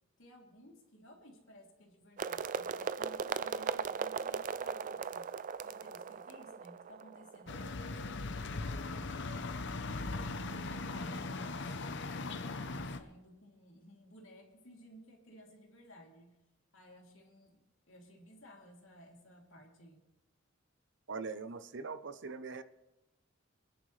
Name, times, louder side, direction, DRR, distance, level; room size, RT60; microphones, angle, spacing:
voice 1, 0.2-5.3 5.6-10.2 10.6-16.4 16.7-17.6 17.9-20.0, equal, 75° left, -1 dB, 3.1 m, -57 dB
sound 1, 2.2-8.1, right 6 dB, 40° right, 0.4 m, -38 dB
sound 2, 7.5-13.0, left 3 dB, 60° left, 0.8 m, -39 dB
voice 2, 21.1-22.6, right 4 dB, 60° right, 12 dB, 0.7 m, -41 dB
26.5 x 10.0 x 3.3 m, 0.98 s
head